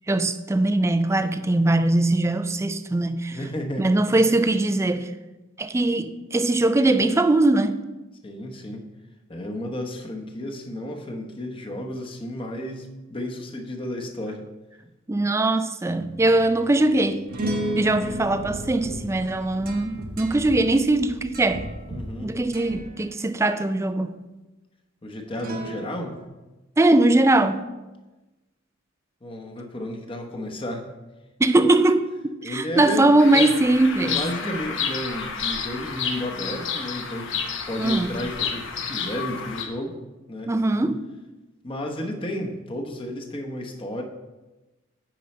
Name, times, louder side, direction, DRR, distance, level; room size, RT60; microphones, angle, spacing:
voice 1, 0.1-3.4 3.8-5.1 5.6-7.8 15.1-17.2 17.7-21.6 22.2-24.1 26.8-27.6 31.4-34.5 37.8-38.2 40.5-41.0, right 2 dB, 15° right, 0.3 m, -21 dB
voice 2, 3.3-4.1 8.2-8.8 9.3-14.5 21.9-22.4 25.0-26.2 29.2-30.9 32.4-33.5 34.0-40.0 40.3-40.5 41.6-44.0, left 1 dB, 25° left, 0.9 m, -32 dB
sound 1, 15.9-22.2 22.5-22.9 25.3-26.3, right 1 dB, 45° right, 1.0 m, -35 dB
sound 2, 17.8-22.9, right 1 dB, 90° right, 0.7 m, -39 dB
Bird vocalization bird call bird song, 33.2-39.7, left 6 dB, 65° left, 0.9 m, -30 dB
9.0 x 5.3 x 4.3 m
head